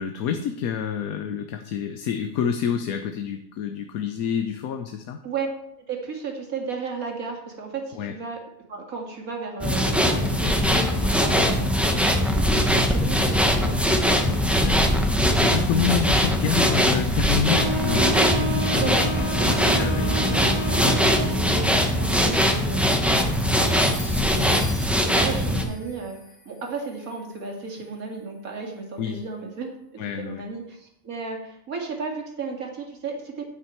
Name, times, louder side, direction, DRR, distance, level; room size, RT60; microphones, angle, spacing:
voice 1, 0.0-5.2 7.9-8.1 11.0-11.2 14.6-19.1 19.4-20.3 24.9-25.1 29.0-29.2 30.0-30.4, left 7 dB, 80° left, 7 dB, 1.2 m, -28 dB
voice 2, 5.8-8.4 8.7-15.1 18.8-20.6 21.0-26.2 26.5-29.7 30.2-33.5, right 4 dB, 70° right, 1 dB, 2.4 m, -34 dB
sound 1, 9.6-25.6, equal, ahead, 0.8 m, -21 dB
Wind instrument woodwind instrument, 17.5-21.6, right 2 dB, 85° right, 1.7 m, -30 dB
sound 2, 23.2-27.7, left 3 dB, 30° left, 1.4 m, -42 dB
9.7 x 8.7 x 4.5 m, 0.79 s
omnidirectional pair, 1.5 m